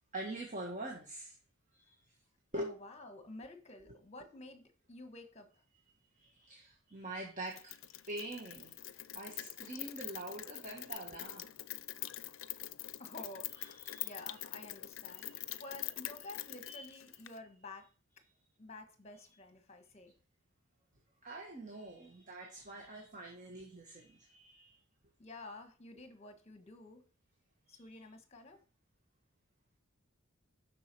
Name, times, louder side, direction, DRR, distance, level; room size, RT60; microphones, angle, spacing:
voice 1, 0.1-1.3 1.7-1.9 2.5-2.8 3.9-4.0 6.2-7.8 8.0-8.7 9.1-11.5 13.6-14.1 15.1-15.6 16.6-16.8 21.2-24.8 27.7-27.8, right 1 dB, 40° right, 0 dB, 1.6 m, -45 dB
voice 2, 2.5-5.5 13.0-15.3 15.6-17.9 18.6-20.1 25.2-27.0 27.7-28.6, left 2 dB, 30° left, 7 dB, 1.4 m, -51 dB
Rain, 7.5-17.4, left 15 dB, 65° left, 0.5 m, -45 dB
7.5 x 6.1 x 6.1 m, 0.38 s
head